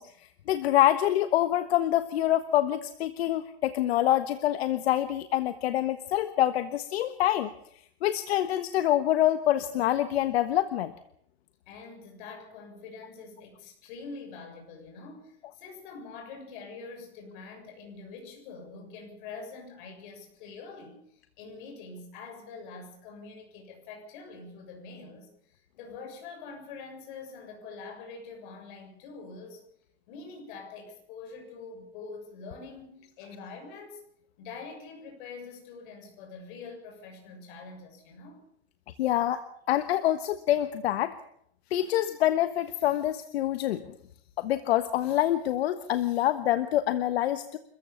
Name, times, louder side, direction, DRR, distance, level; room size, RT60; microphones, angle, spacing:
voice 1, 0.0-7.5 8.0-10.9 39.0-39.4 39.7-41.1 41.7-43.8 44.4-47.6, left 13 dB, 75° left, 10 dB, 1.4 m, -26 dB
voice 2, 11.7-29.6 30.1-34.0 34.4-38.4, left 4 dB, 50° left, 2 dB, 7.2 m, -45 dB
28.5 x 14.5 x 7.1 m, 0.69 s
supercardioid pair, 165°, 32 cm